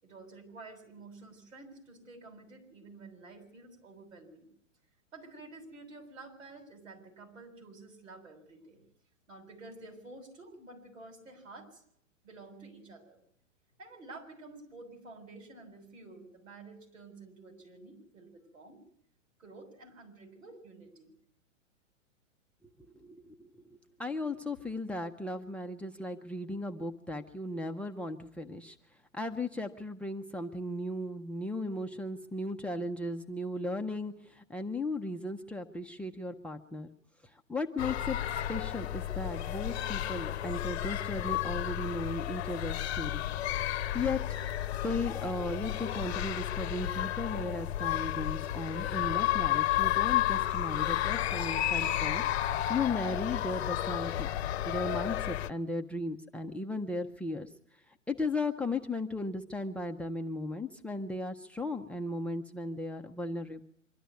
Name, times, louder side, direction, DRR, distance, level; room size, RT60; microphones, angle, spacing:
voice 1, 0.0-4.5 5.1-8.8 9.3-11.8 12.2-13.2 13.8-18.8 19.4-21.1, right 3 dB, 75° right, 4 dB, 7.6 m, -50 dB
voice 2, 22.9-23.5 24.0-28.8 29.1-36.9 37.3-38.2 38.5-43.3 43.9-44.4 44.8-54.3 54.6-57.5 58.1-63.6, left 2 dB, 5° left, 8 dB, 0.9 m, -36 dB
sound 1, 37.8-55.5, left 13 dB, 55° left, 0.9 m, -32 dB
24.5 x 12.5 x 9.6 m, 0.70 s
hypercardioid pair, 115°, 39 cm